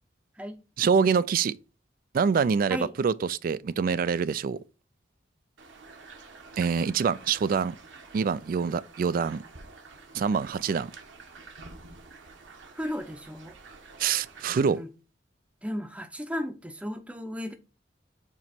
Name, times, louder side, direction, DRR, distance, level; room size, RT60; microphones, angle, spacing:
voice 1, 0.8-1.5 2.1-4.6 6.6-7.8 8.1-9.4 10.1-10.9 14.0-14.8, right 6 dB, 50° right, 0.3 m, -25 dB
sound 1, 5.6-14.6, right 3 dB, 80° right, 1.2 m, -49 dB
voice 2, 12.7-13.6 14.5-14.9 15.6-17.5, equal, 5° right, 0.6 m, -35 dB
7.4 x 3.0 x 4.3 m
head